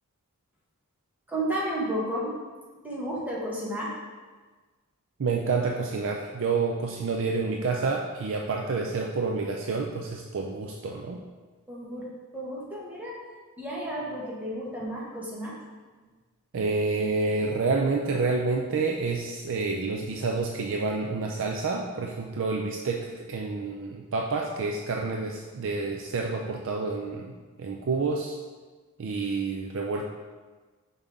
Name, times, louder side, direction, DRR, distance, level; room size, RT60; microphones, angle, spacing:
voice 1, 1.3-2.3 2.8-3.9 11.7-12.1 12.3-13.1 13.6-15.5, right 1 dB, 10° right, -6 dB, 1.3 m, -32 dB
voice 2, 5.2-11.2 16.5-27.3 27.6-28.4 29.0-30.1, right 3 dB, 60° right, 1 dB, 0.5 m, -28 dB
5.5 x 5.2 x 3.6 m, 1.4 s
head